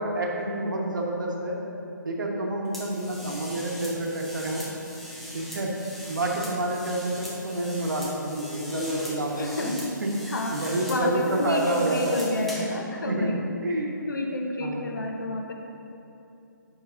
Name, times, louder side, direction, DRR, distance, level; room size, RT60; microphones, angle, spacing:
voice 1, 0.0-1.6 2.0-4.7 5.3-5.7 6.1-9.7 10.0-10.1 10.5-12.6 13.1-13.3 13.6-14.0 14.6-14.8, right 1 dB, 75° right, -1 dB, 1.2 m, -28 dB
sound 1, 2.7-12.8, left 1 dB, ahead, 0.7 m, -39 dB
voice 2, 9.4-10.0 10.3-13.5 14.1-15.5, left 1 dB, 75° left, 2 dB, 0.9 m, -30 dB
8.8 x 6.0 x 2.6 m, 2.8 s
hypercardioid pair, 150°, 10 cm